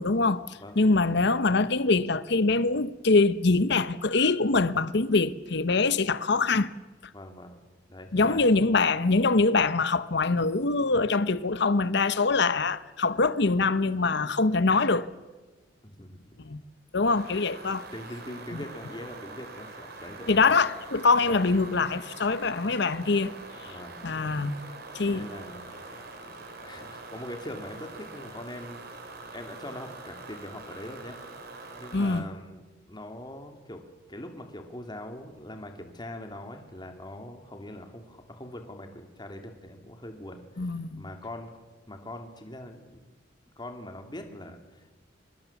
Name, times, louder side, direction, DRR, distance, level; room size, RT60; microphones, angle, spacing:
voice 1, 0.0-6.7 8.1-15.1 16.4-16.6 16.9-17.8 18.5-18.6 20.3-23.3 24.0-24.5 24.9-25.2 31.9-32.3 40.6-41.0, left 3 dB, 65° left, 0.9 m, -24 dB
voice 2, 7.1-7.6 7.9-8.4 15.8-16.4 17.9-20.5 21.2-21.4 23.7-24.0 25.0-31.2 31.8-33.8 34.1-41.5 41.9-43.0 43.6-44.9, left 1 dB, 25° left, 2.7 m, -42 dB
sound 1, 17.1-32.2, right 3 dB, 60° right, 4.0 m, -44 dB
24.5 x 22.0 x 7.2 m
head